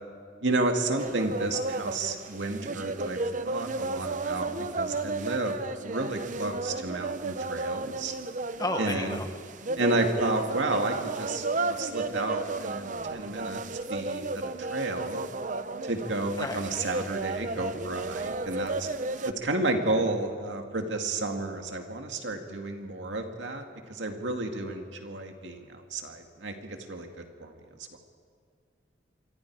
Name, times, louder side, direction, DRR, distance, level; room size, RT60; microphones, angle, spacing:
voice 1, 0.4-3.2 3.4-8.1 8.8-9.2 9.8-13.6 13.9-15.2 15.8-18.9 19.2-27.6 27.9-28.0, right 2 dB, 85° right, 4 dB, 2.3 m, -31 dB
sound 1, 1.0-19.3, right 3 dB, 45° right, 0.8 m, -33 dB
voice 2, 8.6-9.3 16.4-16.6, left 2 dB, 20° left, 6 dB, 1.4 m, -32 dB
26.5 x 24.0 x 4.8 m, 2.1 s
head